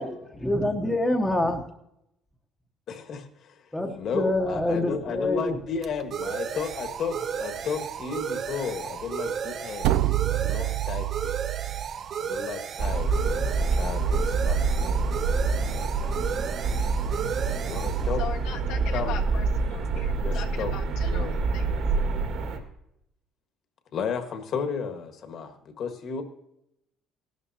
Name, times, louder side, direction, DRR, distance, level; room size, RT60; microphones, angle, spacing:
voice 1, 0.0-1.6 3.7-5.6, left 1 dB, 5° left, 3 dB, 0.9 m, -26 dB
voice 2, 2.9-3.7 4.0-10.0 10.3-11.4 12.2-15.0 15.5-16.1 17.6-18.2 18.9-19.1 20.2-20.7 21.0-21.4 23.9-26.2, left 6 dB, 45° left, 6 dB, 1.6 m, -33 dB
sound 1, 4.2-19.6, right 7 dB, 40° right, 0.6 m, -34 dB
sound 2, 9.8-11.9, right 15 dB, 80° right, 0.4 m, -26 dB
sound 3, 12.8-22.6, right 4 dB, 60° right, 1.8 m, -26 dB
voice 3, 18.2-22.1, left 8 dB, 75° left, 2 dB, 1.5 m, -40 dB
17.5 x 12.0 x 2.8 m, 0.81 s
cardioid pair, 160°, 0 cm